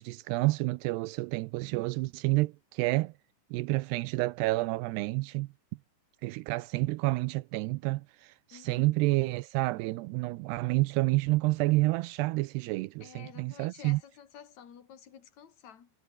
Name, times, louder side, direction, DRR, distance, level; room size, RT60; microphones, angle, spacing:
voice 1, 0.0-3.1 3.5-5.5 6.2-14.0, right 21 dB, 85° right, 2.5 m, -29 dB
voice 2, 8.5-8.9 13.0-15.9, left 8 dB, 45° left, 3.7 m, -51 dB
omnidirectional pair, 5.1 m